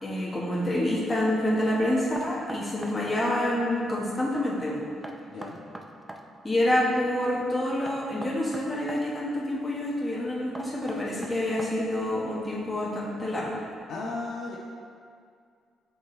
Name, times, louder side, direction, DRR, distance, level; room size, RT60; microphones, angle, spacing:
voice 1, 0.0-4.8 6.4-13.6, left 1 dB, 15° left, -7 dB, 1.3 m, -27 dB
Knock, 2.2-3.4 5.0-6.3 7.9-9.0 10.6-12.0, right 1 dB, 15° right, 0.5 m, -41 dB
voice 2, 5.3-5.6 13.9-14.6, left 3 dB, 80° left, -5 dB, 0.8 m, -35 dB
7.3 x 5.0 x 3.2 m, 2.2 s
cardioid pair, 90°, 0 cm